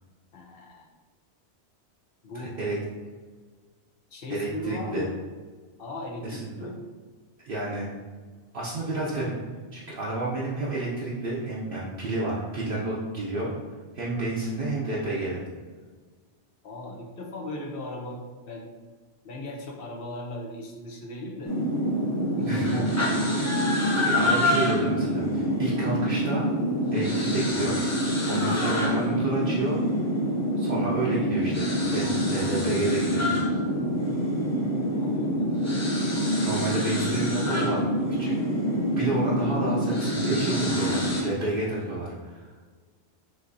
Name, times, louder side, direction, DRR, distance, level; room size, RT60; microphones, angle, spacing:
voice 1, 0.3-0.9 2.2-2.6 4.1-5.1 5.8-6.8 16.6-18.2 18.5-18.7 19.2-21.5 22.4-23.4 28.3-28.4 35.0-36.6 38.2-38.4, left 2 dB, 60° left, 1 dB, 0.9 m, -38 dB
voice 2, 2.3-2.8 4.3-5.1 6.2-6.5 7.4-7.9 8.5-9.3 9.7-13.5 13.9-15.4 22.5-22.8 23.1-23.2 24.0-26.4 26.9-27.8 28.3-29.8 30.6-31.6 31.9-33.3 36.4-37.9 38.2-38.3 38.9-42.5, right 2 dB, 60° right, -6 dB, 0.8 m, -30 dB
sound 1, 21.4-41.2, equal, 20° left, 0.4 m, -26 dB
6.0 x 2.7 x 2.6 m, 1.4 s
omnidirectional pair, 1.2 m